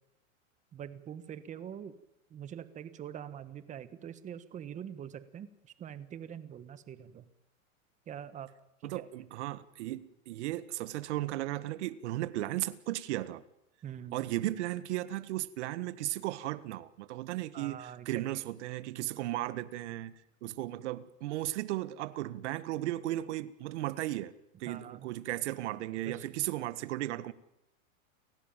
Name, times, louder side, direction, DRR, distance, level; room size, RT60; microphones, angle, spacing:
voice 1, 0.7-1.9 2.3-7.2 8.1-8.5 8.8-9.1 13.8-14.2 17.5-18.2 24.7-25.1 26.0-26.3, right 9 dB, 15° right, 1.4 m, -44 dB
voice 2, 8.8-13.4 14.1-20.1 20.4-24.3 24.6-27.3, right 15 dB, 55° right, 1.6 m, -35 dB
29.5 x 16.0 x 9.0 m
supercardioid pair, 155°, 42 cm